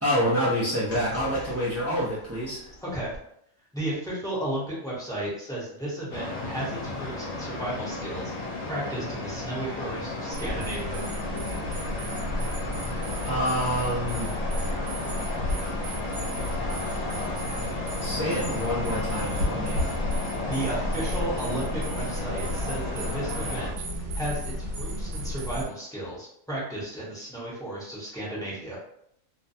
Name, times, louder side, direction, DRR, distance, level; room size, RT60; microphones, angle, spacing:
voice 1, 0.0-2.7 13.2-14.3 18.0-19.8, equal, 25° right, -11 dB, 0.3 m, -27 dB
sound 1, 0.9-3.2, left 1 dB, 40° left, 0.6 m, -42 dB
voice 2, 3.7-11.0 20.5-23.7 24.1-28.8, right 1 dB, 5° left, -8 dB, 0.8 m, -34 dB
sound 2, 6.1-23.7, left 2 dB, 75° left, 1.0 m, -33 dB
sound 3, 10.3-25.6, equal, 60° right, 0.8 m, -32 dB
2.5 x 2.2 x 2.6 m, 0.71 s
omnidirectional pair, 1.4 m